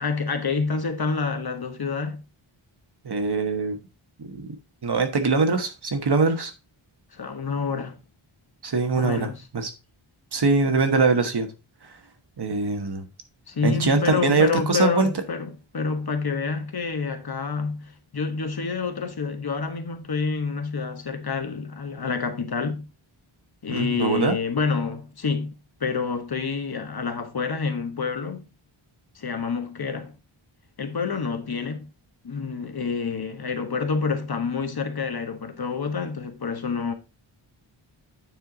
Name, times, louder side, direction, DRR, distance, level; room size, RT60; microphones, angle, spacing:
voice 1, 0.0-2.2 7.1-8.0 9.0-9.4 13.5-22.9 23.6-25.5 25.8-28.4 29.1-30.1 30.8-31.9 32.2-36.9, left 5 dB, 50° left, 1.2 m, -28 dB
voice 2, 3.0-3.8 4.2-4.5 4.8-6.5 8.6-9.7 10.3-11.5 12.4-13.0 13.6-15.1 23.7-24.4, right 4 dB, 50° right, 1.4 m, -22 dB
9.3 x 4.5 x 3.9 m
wide cardioid pair, 115°, 49 cm